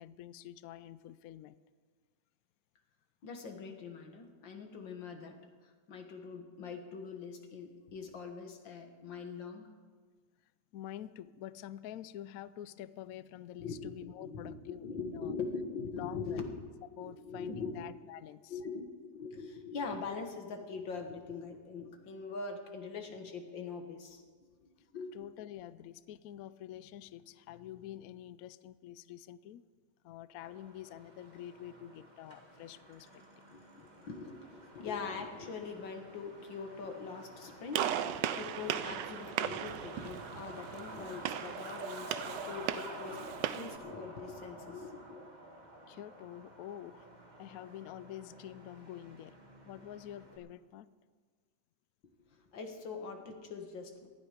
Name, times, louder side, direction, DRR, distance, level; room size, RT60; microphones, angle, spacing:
voice 1, 0.0-1.6 10.7-15.3 15.9-16.4 17.0-18.6 25.1-29.6 30.0-33.2 45.9-47.1 47.4-49.4 49.7-50.9, left 12 dB, 85° left, 16 dB, 0.7 m, -47 dB
voice 2, 3.2-5.4 5.6-9.7 13.6-13.9 14.2-16.5 16.9-17.9 18.5-24.2 24.6-25.1 33.5-45.3 52.3-54.1, left 4 dB, 70° left, 5 dB, 2.2 m, -42 dB
Truck, 30.4-50.4, right 1 dB, 25° right, 1.7 m, -50 dB
Gunshot gunfire, 37.7-43.8, right 10 dB, 75° right, 1.2 m, -37 dB
18.5 x 12.5 x 5.0 m, 1.5 s
omnidirectional pair, 2.1 m